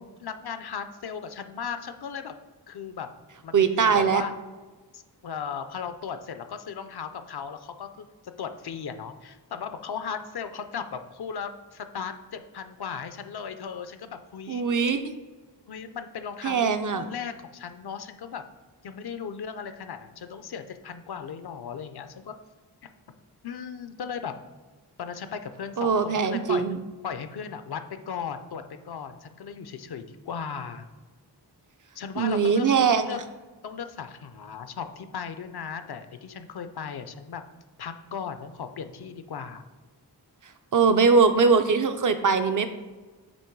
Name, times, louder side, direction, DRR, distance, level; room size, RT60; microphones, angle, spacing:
voice 1, 0.2-2.4 2.7-3.1 3.4-4.3 4.9-8.1 8.4-14.6 15.7-18.4 18.8-22.3 23.4-24.3 25.0-26.6 27.0-30.9 31.9-33.2 33.6-37.4 37.8-39.6, left 7 dB, 65° left, 9 dB, 0.6 m, -36 dB
voice 2, 3.5-4.2 14.5-15.0 16.4-17.0 25.8-26.8 32.2-33.2 40.7-42.7, right 5 dB, 50° right, 8 dB, 0.5 m, -21 dB
8.4 x 3.0 x 4.6 m, 1.3 s
wide cardioid pair, 115°, 41 cm